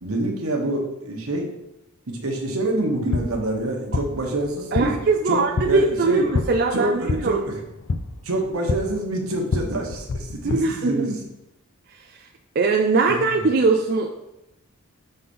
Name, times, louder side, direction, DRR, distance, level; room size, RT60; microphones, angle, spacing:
voice 1, 0.0-1.5 2.1-5.0 5.3-5.4 5.7-6.3 6.7-7.6 8.2-11.2 13.1-13.3, right 1 dB, 75° right, 1 dB, 1.2 m, -26 dB
sound 1, 2.8-10.6, left 3 dB, 60° left, 0.4 m, -29 dB
voice 2, 4.7-7.4 10.4-11.1 12.6-14.2, right 4 dB, 45° right, 2 dB, 0.4 m, -21 dB
5.6 x 4.0 x 5.5 m, 0.92 s
head